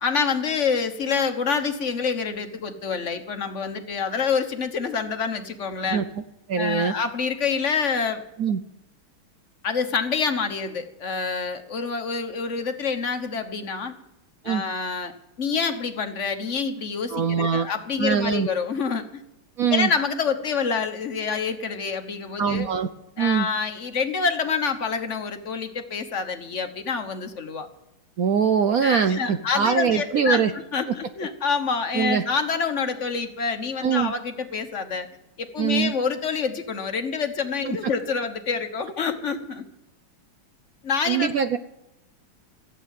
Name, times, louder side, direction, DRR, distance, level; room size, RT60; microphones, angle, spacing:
voice 1, 0.0-6.0 6.5-8.2 9.6-13.9 14.4-19.2 19.7-22.7 23.2-27.7 28.8-35.1 35.4-39.6 40.8-41.3, left 5 dB, 40° left, 7 dB, 1.2 m, -27 dB
voice 2, 5.9-6.2 6.5-6.9 8.4-8.6 14.4-14.6 17.1-17.7 18.0-18.5 19.6-19.9 22.4-22.9 23.2-23.5 28.2-30.5 30.9-31.0 31.9-32.2 33.8-34.1 35.6-35.9 37.7-37.8 41.1-41.6, right 7 dB, 65° right, 10 dB, 0.8 m, -23 dB
15.5 x 8.4 x 9.3 m, 0.86 s
omnidirectional pair, 2.2 m